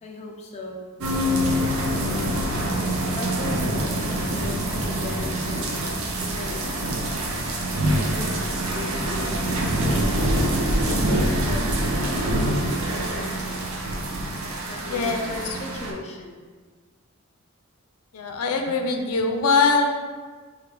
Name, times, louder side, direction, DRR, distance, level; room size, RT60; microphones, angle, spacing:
voice 1, 0.0-0.9 1.5-2.5 3.1-5.9 6.2-7.2 8.0-12.3 12.9-13.7 14.7-16.4, left 2 dB, 30° left, -1 dB, 0.4 m, -38 dB
sound 1, 1.0-15.9, right 1 dB, 75° right, 0.6 m, -25 dB
voice 2, 14.9-15.2 18.1-19.9, left 4 dB, 90° left, 4 dB, 0.4 m, -22 dB
3.2 x 2.4 x 4.4 m, 1.5 s
head